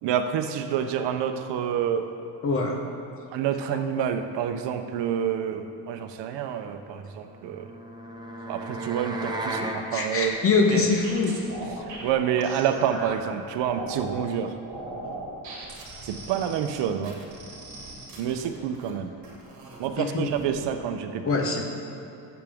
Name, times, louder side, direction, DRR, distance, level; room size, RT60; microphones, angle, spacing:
voice 1, 0.0-2.1 3.3-7.7 8.5-10.4 10.7-10.9 12.0-14.5 16.0-17.2 18.2-19.1 19.8-21.3, right 8 dB, 80° right, 7 dB, 0.8 m, -28 dB
voice 2, 2.4-2.8 9.9-11.3 11.8-11.9 20.0-20.3 21.2-21.6, left 4 dB, 30° left, 1 dB, 1.0 m, -23 dB
sound 1, 7.2-9.8, right 2 dB, 10° right, 0.5 m, -34 dB
sound 2, 10.3-13.1 13.6-14.3 14.6-18.9 19.2-19.9 20.3-20.6, right 2 dB, 45° right, 1.8 m, -40 dB
14.0 x 7.2 x 3.6 m, 2.7 s
cardioid pair, 175°, 42 cm